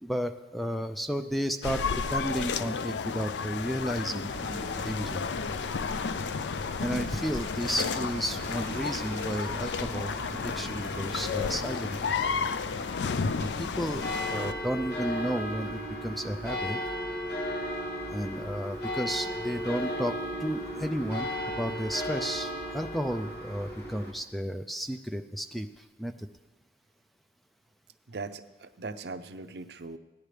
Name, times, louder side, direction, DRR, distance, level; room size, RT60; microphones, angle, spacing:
voice 1, 0.0-5.2 6.8-12.0 13.4-16.8 18.1-25.7 26.0-26.3, equal, ahead, 8 dB, 0.3 m, -33 dB
sound 1, 1.6-14.5, left 5 dB, 80° left, 0.4 m, -32 dB
sound 2, 4.3-24.1, equal, 55° left, 2.4 m, -37 dB
voice 2, 28.1-30.0, right 3 dB, 65° right, 10 dB, 0.6 m, -40 dB
17.5 x 10.5 x 3.3 m, 1.1 s
head